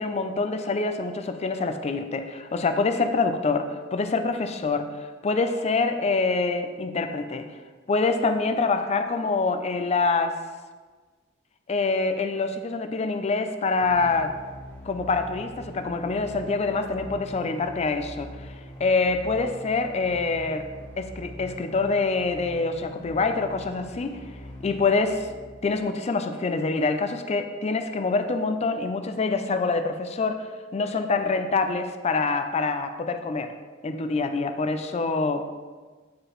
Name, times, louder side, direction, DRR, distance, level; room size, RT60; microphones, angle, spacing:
voice 1, 0.0-4.9 5.2-7.5 7.9-10.4 11.7-14.3 14.8-18.5 18.8-20.7 21.0-24.2 24.6-25.2 25.6-30.5 30.7-33.5 33.8-35.5, left 3 dB, 35° left, 8 dB, 0.4 m, -25 dB
sound 1, 13.8-25.8, equal, 10° left, 1.4 m, -43 dB
8.2 x 4.8 x 3.0 m, 1.4 s
head